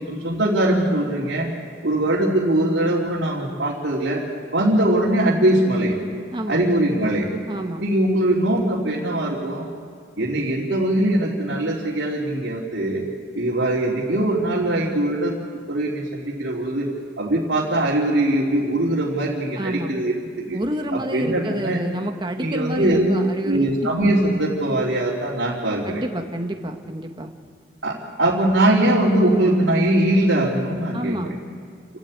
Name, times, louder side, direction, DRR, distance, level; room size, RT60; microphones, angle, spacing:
voice 1, 0.0-1.5 1.8-4.2 4.5-5.9 6.5-7.3 7.8-9.6 10.2-13.0 13.3-15.3 15.7-16.9 17.2-20.6 20.9-21.8 22.4-23.1 23.4-26.0 27.8-31.2, right 1 dB, 80° right, -7 dB, 3.2 m, -21 dB
voice 2, 6.3-6.6 7.5-7.8 19.6-19.9 20.5-23.9 25.8-27.3 30.9-31.4, right 1 dB, 25° right, 4 dB, 1.4 m, -28 dB
29.0 x 13.0 x 8.8 m, 2.2 s
head